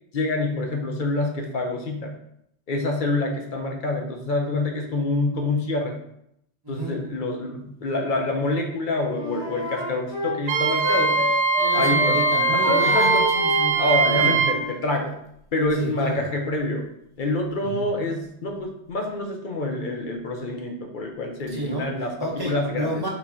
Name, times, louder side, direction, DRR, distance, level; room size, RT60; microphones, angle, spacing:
voice 1, 0.1-2.1 2.7-5.9 6.7-11.3 11.8-12.2 12.5-13.2 13.8-15.1 15.5-16.9 17.2-23.0, left 2 dB, 55° left, 2 dB, 0.7 m, -26 dB
voice 2, 6.6-7.0 11.6-14.4 15.8-16.2 17.6-17.8 21.5-21.9 22.2-23.1, right 1 dB, 20° right, -4 dB, 0.9 m, -30 dB
Wind instrument woodwind instrument, 9.1-11.7 12.0-14.7, left 1 dB, 70° left, 1.5 m, -28 dB
Wind instrument woodwind instrument 2, 10.5-14.6, right 4 dB, 80° right, 0.8 m, -21 dB
4.1 x 3.0 x 3.6 m, 0.75 s
omnidirectional pair, 1.2 m